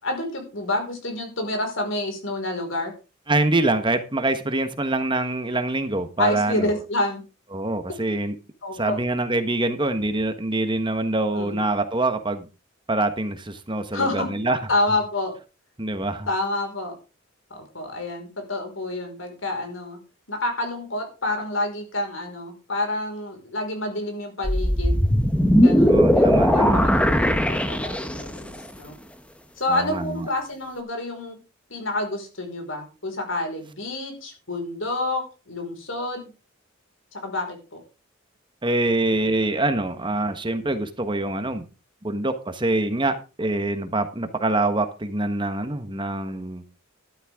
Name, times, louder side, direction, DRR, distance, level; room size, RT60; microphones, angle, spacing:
voice 1, 0.0-2.9 6.2-7.3 8.6-9.0 11.3-11.6 13.9-14.4 14.7-15.4 16.3-16.9 17.5-20.0 20.3-25.0 25.6-29.0 29.6-31.4 31.7-36.3 37.1-37.8, left 2 dB, 70° left, 4 dB, 5.1 m, -28 dB
voice 2, 3.3-6.7 7.5-8.3 8.8-12.5 12.9-14.6 15.8-16.3 25.9-26.8 29.7-30.3 38.6-41.7 42.0-46.6, right 2 dB, 25° right, 9 dB, 1.3 m, -25 dB
sound 1, 24.4-28.4, equal, 5° left, 1.0 m, -19 dB
12.5 x 12.5 x 3.7 m, 0.31 s
head